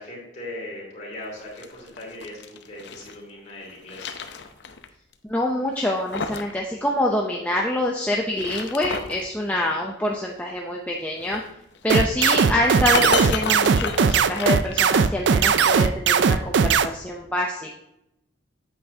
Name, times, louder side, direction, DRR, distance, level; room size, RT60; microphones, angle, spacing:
voice 1, 0.0-4.1 12.2-12.6, left 1 dB, 35° left, -4 dB, 3.1 m, -39 dB
sound 1, 1.3-3.2 3.6-4.9 5.1-5.2 5.7-6.6 6.8-6.9 8.2-9.2 11.2-15.2, left 5 dB, 60° left, 0.6 m, -32 dB
voice 2, 5.3-11.4 11.8-17.8, left 1 dB, 5° left, -1 dB, 0.6 m, -26 dB
sound 2, 11.9-16.9, right 6 dB, 60° right, 0.4 m, -18 dB
8.8 x 8.0 x 2.8 m, 0.84 s
head